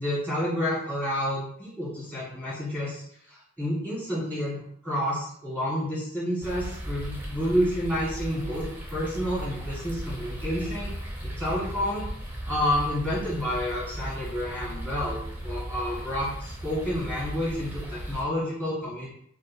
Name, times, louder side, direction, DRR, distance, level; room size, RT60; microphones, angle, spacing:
voice 1, 0.0-10.9 11.2-19.1, equal, 5° left, -10 dB, 1.5 m, -30 dB
sound 1, 6.4-18.2, equal, 10° right, 0.7 m, -36 dB
6.3 x 2.3 x 2.6 m, 0.67 s
head